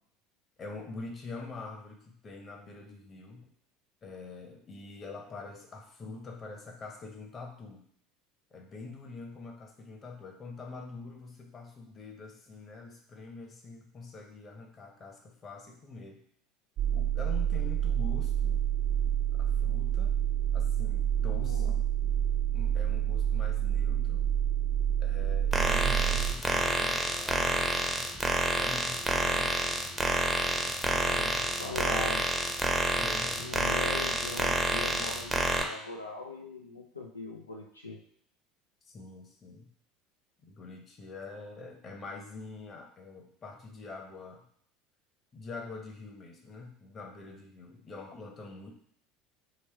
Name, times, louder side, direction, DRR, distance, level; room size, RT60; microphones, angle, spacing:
voice 1, 0.6-3.5 4.0-7.9 8.5-16.2 16.9-18.7 19.3-20.2 20.5-21.8 22.5-24.3 25.0-28.1 28.6-29.9 30.3-31.9 33.0-33.7 38.9-39.7 40.4-44.5 45.3-48.7, left 3 dB, 30° left, 2 dB, 1.0 m, -45 dB
sound 1, 16.8-26.3, right 10 dB, 45° right, 0.7 m, -28 dB
sound 2, 25.5-35.6, right 1 dB, 10° right, 0.7 m, -28 dB
voice 2, 31.6-32.2 33.4-38.0, left 3 dB, 85° left, 0 dB, 0.4 m, -40 dB
3.3 x 3.1 x 4.5 m, 0.64 s
figure-of-eight pair, 70°, 0 cm